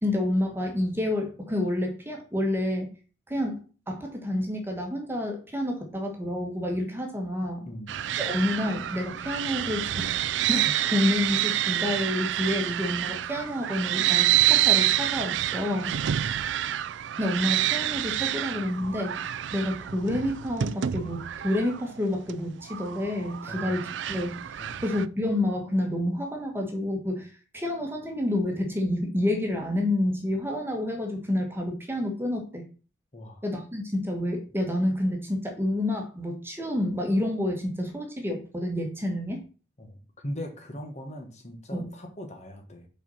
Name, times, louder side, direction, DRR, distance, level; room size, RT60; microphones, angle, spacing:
voice 1, 0.0-2.9 3.3-7.7 8.2-10.1 10.5-16.0 17.2-19.2 19.5-27.3 27.5-32.6 33.4-39.4 41.7-41.9, left 1 dB, 15° right, 2 dB, 1.4 m, -29 dB
sound 1, 7.9-25.1, right 12 dB, 80° right, 0.4 m, -28 dB
voice 2, 33.1-33.4 39.8-42.9, equal, 40° left, 4 dB, 1.3 m, -40 dB
5.9 x 4.5 x 5.5 m, 0.36 s
head